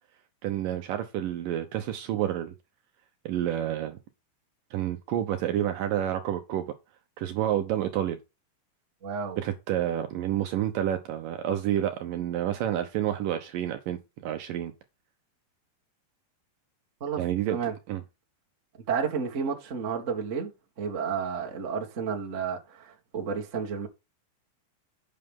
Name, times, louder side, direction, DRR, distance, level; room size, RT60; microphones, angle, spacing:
voice 1, 0.4-2.5 3.3-4.0 4.7-6.6 7.2-8.2 9.4-14.7 17.2-17.6 17.9-18.0, right 11 dB, 75° right, 2.2 m, -29 dB
voice 2, 9.0-9.4 17.0-17.2 17.5-17.7 18.9-20.5 20.8-23.9, right 6 dB, 35° right, 1.1 m, -31 dB
8.7 x 6.5 x 3.6 m
omnidirectional pair, 4.6 m